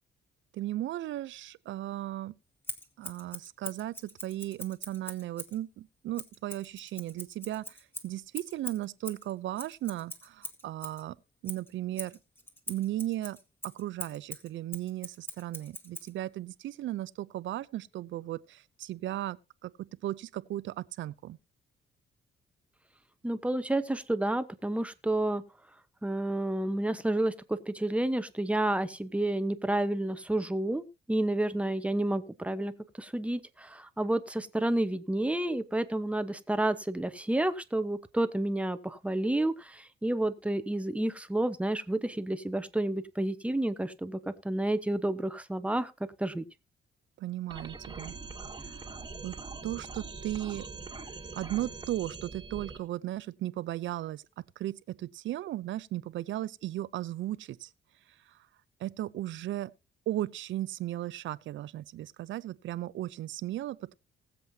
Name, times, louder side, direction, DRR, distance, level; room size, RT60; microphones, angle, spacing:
voice 1, 0.5-2.4 3.0-7.8 8.0-11.2 11.4-12.2 12.7-13.4 13.6-21.4 47.2-48.1 48.6-49.3 49.6-50.7 51.3-57.7 58.3-58.4 58.8-59.7 60.1-63.9, right 14 dB, 75° right, 0.6 m, -36 dB
Scissors, 2.6-5.6 6.1-11.0 11.4-16.1, left 1 dB, 10° left, 2.0 m, -43 dB
voice 2, 23.2-25.4 26.0-32.7 33.0-45.9 46.2-46.4, right 1 dB, 5° right, 1.1 m, -30 dB
sound 1, 47.5-52.8, right 4 dB, 20° right, 1.9 m, -43 dB
19.5 x 7.7 x 2.8 m
cardioid pair, 90°, 20 cm